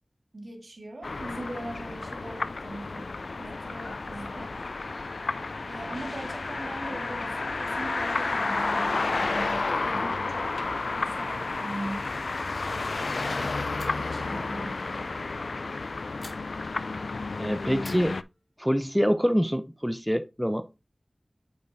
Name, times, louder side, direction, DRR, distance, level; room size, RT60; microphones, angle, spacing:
voice 1, 0.3-4.5 5.7-10.5 11.0-12.1 12.6-14.8 17.3-17.4, right 1 dB, 70° right, 2.0 m, -40 dB
sound 1, 1.0-18.2, left 3 dB, 85° left, 0.3 m, -31 dB
sound 2, 13.7-14.2 16.2-17.1 17.8-18.9, left 1 dB, 45° left, 2.3 m, -51 dB
voice 2, 17.4-18.1 18.6-20.7, equal, ahead, 0.6 m, -25 dB
8.6 x 5.3 x 2.6 m
wide cardioid pair, 50°, 0 cm